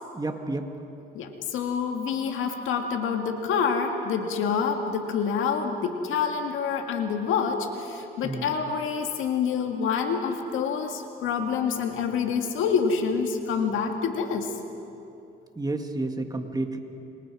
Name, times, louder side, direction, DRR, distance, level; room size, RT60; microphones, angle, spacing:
voice 1, 0.1-0.7 8.2-8.5 15.6-16.8, right 2 dB, 20° right, 5 dB, 2.0 m, -30 dB
voice 2, 1.1-14.5, left 6 dB, 90° left, 4 dB, 1.9 m, -27 dB
29.0 x 25.0 x 4.9 m, 2.8 s
cardioid pair, 90°, 20 cm